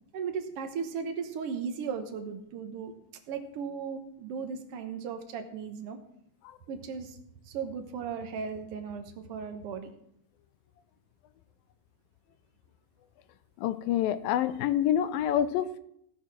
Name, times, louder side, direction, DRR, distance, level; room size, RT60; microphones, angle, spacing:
voice 1, 0.1-2.9 3.3-6.0 6.7-7.2 7.4-9.9, right 6 dB, 75° right, 6 dB, 1.3 m, -36 dB
voice 2, 13.6-15.8, left 10 dB, 85° left, 13 dB, 2.4 m, -27 dB
17.0 x 6.3 x 5.9 m, 0.72 s
omnidirectional pair, 4.2 m